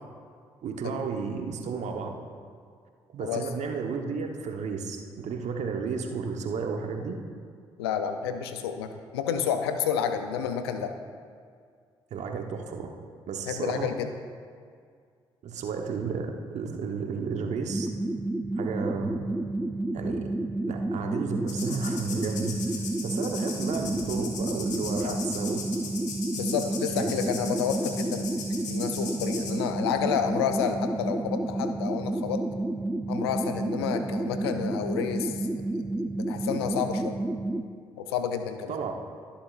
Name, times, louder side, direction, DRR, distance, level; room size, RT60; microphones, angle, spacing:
voice 1, 0.6-2.1 3.1-7.1 12.1-12.9 13.3-13.9 15.4-17.9 18.6-19.1 19.9-20.3 20.7-22.5 23.0-25.6 26.6-26.7 26.9-27.1 38.7-38.9, right 5 dB, 65° right, 3 dB, 1.1 m, -32 dB
voice 2, 7.8-10.9 13.5-14.1 25.0-25.2 26.3-32.4 33.1-35.5 36.2-37.2 38.0-38.8, left 8 dB, 90° left, 8 dB, 0.5 m, -30 dB
sound 1, 17.7-37.6, right 2 dB, 10° right, 0.5 m, -30 dB
sound 2, 21.5-29.5, left 4 dB, 70° left, 1.5 m, -38 dB
20.0 x 7.2 x 2.5 m, 2.1 s
hypercardioid pair, 40°, 13 cm